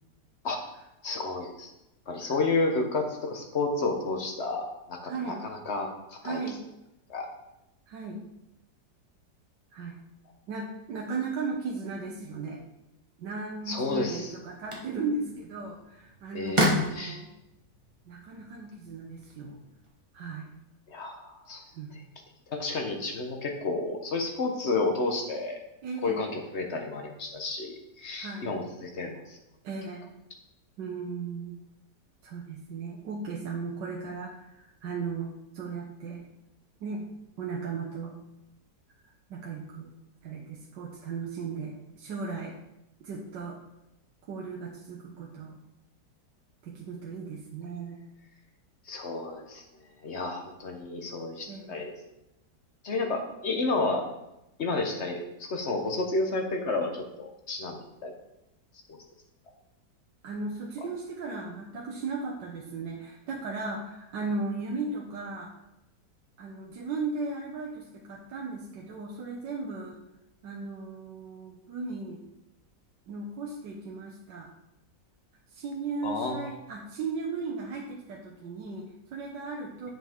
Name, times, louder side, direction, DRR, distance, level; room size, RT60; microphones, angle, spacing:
voice 1, 1.0-1.7 2.1-6.4 7.1-7.3 13.7-14.3 16.3-17.2 20.9-21.6 22.5-25.6 26.0-29.4 48.9-49.6 50.0-51.9 52.8-54.0 54.6-58.1 76.0-76.4, left 3 dB, 50° left, 3 dB, 1.0 m, -31 dB
voice 2, 5.0-5.4 6.2-6.6 7.9-8.2 9.7-9.9 10.5-12.6 13.2-17.3 18.1-19.6 20.1-20.5 21.7-22.0 25.8-26.2 28.2-28.6 29.6-30.1 30.8-31.6 32.2-36.2 36.8-37.1 37.4-38.1 39.3-39.9 40.2-42.5 43.0-43.6 44.3-45.6 46.6-48.0 51.5-51.8 60.2-65.5 66.4-70.0 70.4-72.2 73.1-74.5 75.5-79.9, right 4 dB, 80° right, -2 dB, 1.5 m, -36 dB
sound 1, 13.7-19.9, equal, 20° right, 1.2 m, -33 dB
7.4 x 6.0 x 3.6 m, 0.88 s
omnidirectional pair, 1.9 m